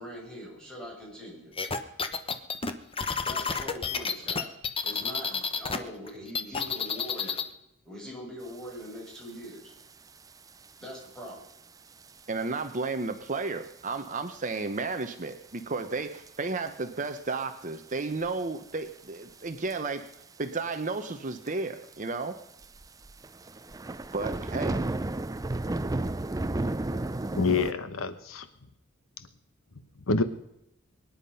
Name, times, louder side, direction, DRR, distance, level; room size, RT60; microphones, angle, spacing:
voice 1, 0.0-1.5 3.2-4.5 4.8-7.4 7.8-9.7 10.8-11.4, equal, 5° left, -3 dB, 6.3 m, -42 dB
sound 1, 1.6-5.8 6.1-7.5, left 5 dB, 25° left, 1.0 m, -30 dB
sound 2, 9.1-9.2 9.4-9.8 10.5-10.7 11.3-11.4 12.0-12.1 12.4-12.5 12.7-12.8 13.9-14.2 14.6-14.7 15.6-15.7 16.3-16.7 17.1-17.2 17.7-18.4 19.5-19.8 20.1-20.2 20.4-20.5 20.7-20.8 21.5-21.6 21.9-22.0 22.6-27.7, right 2 dB, 15° right, 0.5 m, -32 dB
voice 2, 12.3-20.0 20.4-22.4 24.1-24.8, right 3 dB, 40° right, 7 dB, 0.9 m, -33 dB
voice 3, 27.4-28.4 30.1-30.2, left 4 dB, 85° left, 12 dB, 1.1 m, -26 dB
23.0 x 10.5 x 5.5 m, 0.82 s
head